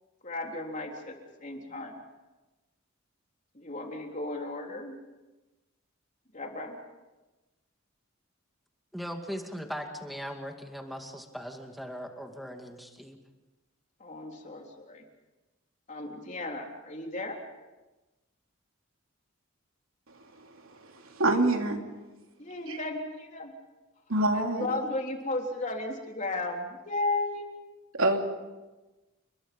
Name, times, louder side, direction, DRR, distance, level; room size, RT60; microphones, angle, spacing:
voice 1, 0.2-1.1 1.4-2.0 3.5-5.0 6.3-6.8 14.0-15.0 15.9-17.4 22.4-23.5 24.3-27.5, left 2 dB, 35° left, 1 dB, 3.6 m, -34 dB
voice 2, 8.9-13.2, equal, ahead, 3 dB, 2.2 m, -39 dB
voice 3, 20.9-21.8 22.7-22.8 24.1-24.7 27.9-28.2, right 2 dB, 85° right, 3 dB, 3.0 m, -25 dB
30.0 x 22.0 x 5.4 m, 1.1 s
head